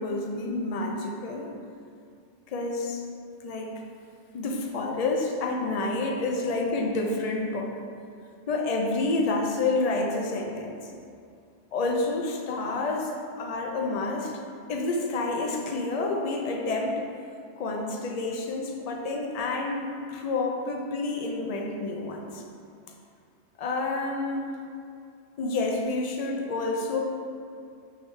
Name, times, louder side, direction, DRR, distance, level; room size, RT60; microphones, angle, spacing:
voice 1, 0.0-1.5 2.5-3.0 3.4-3.7 4.3-7.7 8.5-10.9 11.7-14.3 14.7-17.0 17.6-22.4 23.6-24.6 25.4-27.0, left 3 dB, 55° left, 1 dB, 0.4 m, -29 dB
4.5 x 3.6 x 3.2 m, 2.4 s
omnidirectional pair, 1.2 m